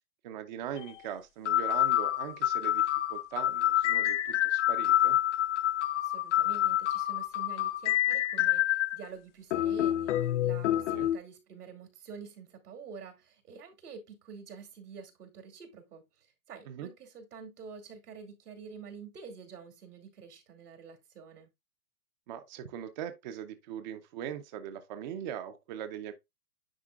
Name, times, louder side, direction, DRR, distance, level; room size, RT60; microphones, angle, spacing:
voice 1, 0.2-5.2 10.9-11.1 16.7-16.9 22.3-26.1, right 9 dB, 30° right, 0.5 m, -40 dB
sound 1, 0.8-0.9 1.5-9.0 9.5-11.2, left 13 dB, 50° left, 0.6 m, -27 dB
voice 2, 6.0-21.5, right 6 dB, 80° right, 2.6 m, -48 dB
9.9 x 4.3 x 2.3 m
hypercardioid pair, 140°, 45 cm